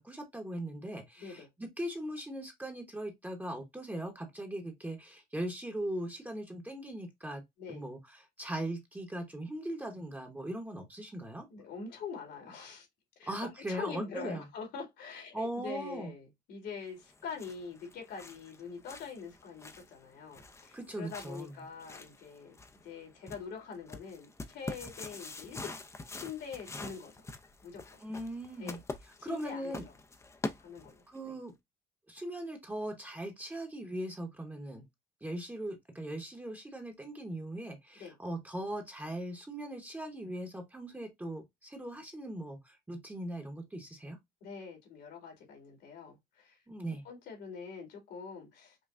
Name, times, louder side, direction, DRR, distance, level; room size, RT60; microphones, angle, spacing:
voice 1, 0.0-7.4 7.7-11.5 13.3-14.5 15.3-16.1 20.7-21.6 28.0-28.8 29.2-29.9 31.1-31.5 32.1-34.8 35.2-44.2 46.7-47.0, right 1 dB, 10° right, 1.0 m, -39 dB
voice 2, 1.2-1.5 7.6-7.9 11.5-12.9 13.2-22.5 22.8-25.7 26.1-27.3 27.6-27.8 28.6-28.8 29.2-29.8 30.6-31.4 38.0-38.2 44.4-46.6 47.0-48.8, left 6 dB, 75° left, 2.3 m, -44 dB
sound 1, 17.0-31.2, left 3 dB, 15° left, 0.5 m, -46 dB
5.4 x 2.3 x 2.4 m
cardioid pair, 110°, 17 cm